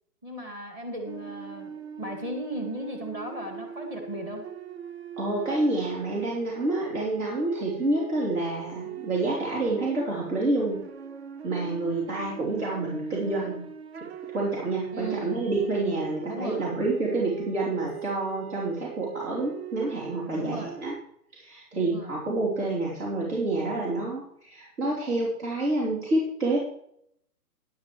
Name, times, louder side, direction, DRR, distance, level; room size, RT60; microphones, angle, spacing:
voice 1, 0.2-1.7 2.0-4.4 14.9-15.4 16.3-16.6 20.3-20.7 21.7-22.2, equal, 20° right, 2 dB, 2.0 m, -36 dB
sound 1, 1.1-21.0, right 9 dB, 45° right, 0.6 m, -40 dB
voice 2, 5.2-10.8 11.4-13.7 14.0-14.1 14.3-20.9 21.3-26.6, right 2 dB, 65° right, -4 dB, 3.6 m, -28 dB
12.5 x 10.5 x 3.2 m, 0.71 s
hypercardioid pair, 150°, 48 cm